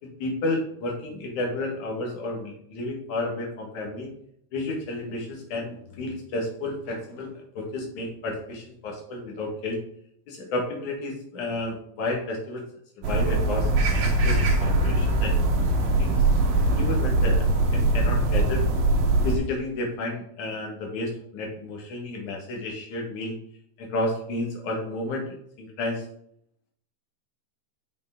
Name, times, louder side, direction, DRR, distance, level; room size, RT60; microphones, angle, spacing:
voice 1, 0.0-4.1 4.5-9.8 10.3-12.6 13.0-15.7 16.0-16.2 16.8-18.7 19.2-23.3 23.8-25.2 25.6-26.0, left 2 dB, 70° left, 0 dB, 3.0 m, -31 dB
sound 1, 13.0-19.4, right 2 dB, 65° right, 2.3 m, -22 dB
6.7 x 6.6 x 3.7 m, 0.70 s
omnidirectional pair, 3.6 m